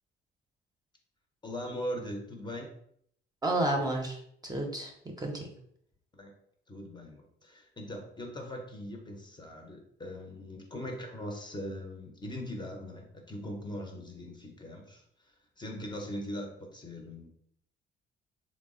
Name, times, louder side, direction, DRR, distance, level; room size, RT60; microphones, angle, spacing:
voice 1, 1.4-2.7 6.1-6.3 6.7-17.3, equal, 20° left, 2 dB, 0.6 m, -40 dB
voice 2, 3.4-5.5, right 1 dB, 20° right, 1 dB, 0.6 m, -31 dB
3.2 x 2.0 x 3.6 m, 0.67 s
cardioid pair, 90°, 20 cm